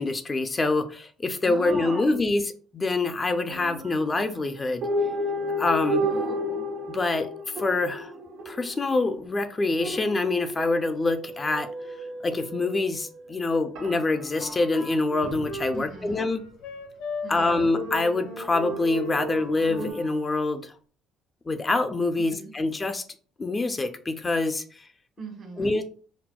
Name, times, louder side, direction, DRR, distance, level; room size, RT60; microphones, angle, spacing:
voice 1, 0.0-4.9 5.5-6.0 6.9-7.3 7.6-8.1 8.5-11.7 12.2-16.5 17.3-20.7 21.5-23.0 23.4-24.6 25.6-25.8, left 3 dB, 25° left, 0.3 m, -25 dB
voice 2, 1.4-2.2 6.0-6.6 15.7-16.2 17.2-17.7 22.2-22.5 25.2-25.7, right 3 dB, 50° right, 1.1 m, -39 dB
sound 1, 3.5-4.2 4.8-9.3 9.8-13.2 13.7-16.3 17.7-19.9, equal, 80° right, 0.9 m, -33 dB
Wind instrument woodwind instrument, 14.3-20.6, equal, 85° left, 1.0 m, -38 dB
4.1 x 2.0 x 2.2 m
cardioid pair, 100°, 0 cm